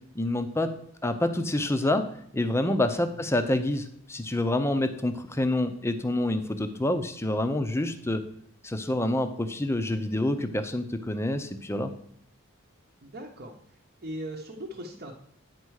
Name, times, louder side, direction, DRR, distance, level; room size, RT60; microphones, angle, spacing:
voice 1, 0.1-0.7 1.0-2.1 2.3-8.2 8.6-11.9, left 1 dB, 15° left, 9 dB, 0.6 m, -27 dB
voice 2, 13.0-13.6 14.0-15.1, right 1 dB, 50° right, -2 dB, 1.0 m, -39 dB
9.7 x 4.5 x 6.3 m, 0.66 s
head